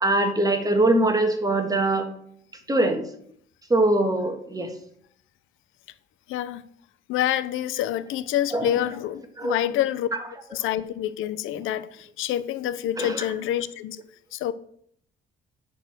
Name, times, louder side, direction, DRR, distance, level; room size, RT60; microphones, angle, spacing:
voice 1, 0.0-2.1 2.7-3.1 3.7-4.7 8.5-8.7 9.4-9.6 13.0-13.2, right 2 dB, 20° right, 1.6 m, -22 dB
voice 2, 6.3-6.6 7.1-10.1 10.5-14.0 14.3-14.5, left 12 dB, 85° left, 0.6 m, -27 dB
9.5 x 4.6 x 6.4 m
cardioid pair, 90°, 20 cm